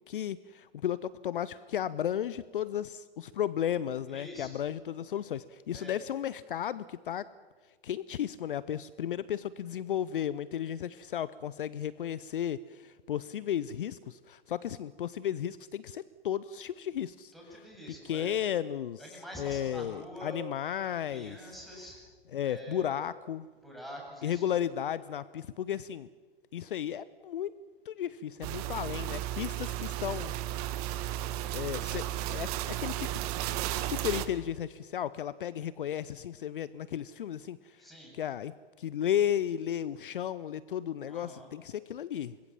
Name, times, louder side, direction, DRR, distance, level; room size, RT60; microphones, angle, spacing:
voice 1, 0.1-7.3 7.8-17.3 18.0-21.5 22.3-23.5 24.2-26.1 26.5-27.5 27.9-30.3 31.5-33.2 33.7-37.9 38.1-42.4, left 10 dB, 60° left, 18 dB, 0.7 m, -34 dB
voice 2, 4.1-4.5 5.7-6.0 17.3-18.3 19.0-20.4 21.1-22.0 22.4-22.9 23.6-24.4 37.8-38.1 41.1-41.5, right 1 dB, ahead, -2 dB, 7.8 m, -45 dB
sound 1, 28.4-34.3, right 13 dB, 40° right, 1.4 m, -34 dB
25.0 x 21.5 x 7.4 m, 1.5 s
figure-of-eight pair, 110°, 30 cm